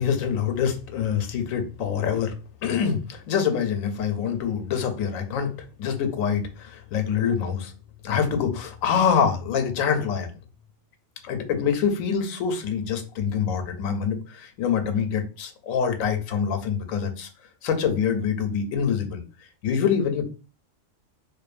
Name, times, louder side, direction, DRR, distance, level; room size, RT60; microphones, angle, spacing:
voice 1, 0.0-2.3 2.6-5.5 5.8-7.7 8.0-10.3 11.2-17.3 17.6-19.2 19.6-20.3, left 7 dB, 85° left, 7 dB, 1.0 m, -25 dB
2.6 x 2.2 x 2.4 m, 0.34 s
omnidirectional pair, 1.4 m